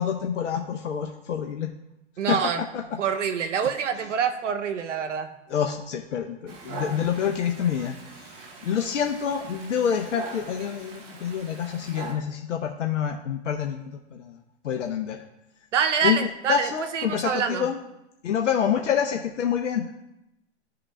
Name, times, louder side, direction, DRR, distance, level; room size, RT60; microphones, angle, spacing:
voice 1, 0.0-1.7 2.3-2.4 2.7-2.8 5.5-8.3 8.6-14.4 14.6-15.2 16.0-17.8 18.2-19.8, left 8 dB, 85° left, 3 dB, 0.6 m, -27 dB
voice 2, 2.2-2.6 3.0-5.3 15.7-17.7, right 7 dB, 85° right, 10 dB, 0.8 m, -26 dB
Dog, 6.5-12.1, right 3 dB, 35° right, 1.1 m, -41 dB
11.0 x 3.8 x 2.2 m, 0.90 s
hypercardioid pair, 130°, 35 cm